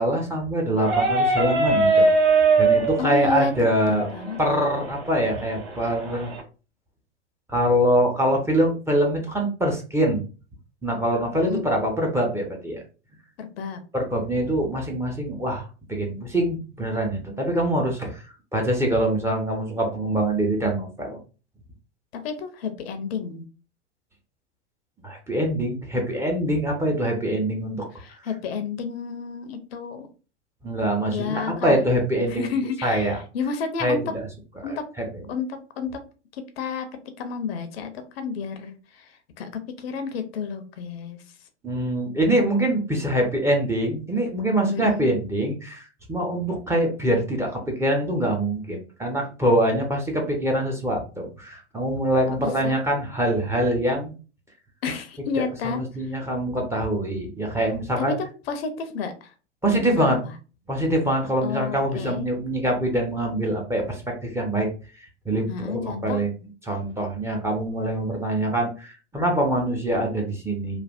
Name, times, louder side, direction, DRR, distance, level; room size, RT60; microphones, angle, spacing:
voice 1, 0.0-4.1 4.4-6.3 7.5-10.2 10.8-12.8 13.9-18.2 18.5-21.2 25.0-27.8 30.6-32.5 32.8-33.2 33.8-34.0 34.7-34.8 41.6-54.1 55.6-58.1 59.6-60.2 60.7-64.7 65.3-66.3 66.7-70.8, right 1 dB, 10° right, 0 dB, 0.6 m, -24 dB
sound 1, 0.8-6.4, right 3 dB, 55° right, 1.5 m, -22 dB
voice 2, 3.0-3.5 3.9-4.4 11.4-11.6 13.4-13.8 22.1-23.5 28.0-30.1 31.1-31.8 32.3-34.0 34.6-34.8 35.3-36.0 36.3-36.9 37.2-41.2 44.7-45.1 52.3-52.8 54.8-56.1 57.9-59.3 59.7-60.3 61.4-62.3 65.5-66.2, left 5 dB, 60° left, 9 dB, 0.6 m, -31 dB
3.2 x 2.3 x 2.4 m, 0.35 s
figure-of-eight pair, 95°, 35 cm